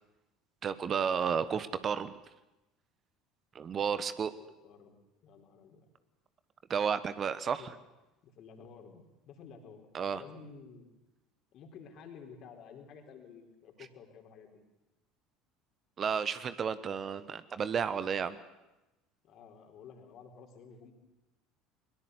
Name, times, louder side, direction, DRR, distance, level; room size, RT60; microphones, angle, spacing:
voice 1, 0.6-2.1 3.5-4.3 6.7-7.7 9.9-10.2 16.0-18.4, right 7 dB, 35° right, 14 dB, 1.2 m, -32 dB
voice 2, 4.4-5.9 8.2-10.9 11.5-14.6 19.2-20.9, left 6 dB, 50° left, 4 dB, 4.5 m, -52 dB
22.0 x 22.0 x 8.3 m, 1.0 s
figure-of-eight pair, 65°, 0 cm